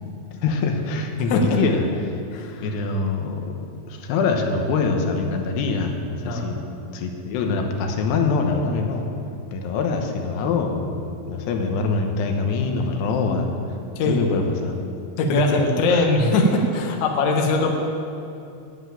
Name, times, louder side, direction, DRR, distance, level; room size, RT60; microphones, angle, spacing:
voice 1, 0.4-2.2 2.6-3.5 3.9-6.6 6.9-9.1 9.5-13.6 14.0-14.7 15.3-15.6 15.9-16.1, left 4 dB, 85° left, 3 dB, 3.2 m, -24 dB
voice 2, 1.3-1.6 2.3-2.6 6.2-6.5 14.0-14.2 15.2-17.7, left 2 dB, 60° left, 1 dB, 2.1 m, -21 dB
11.0 x 8.0 x 9.0 m, 2.6 s
omnidirectional pair, 4.7 m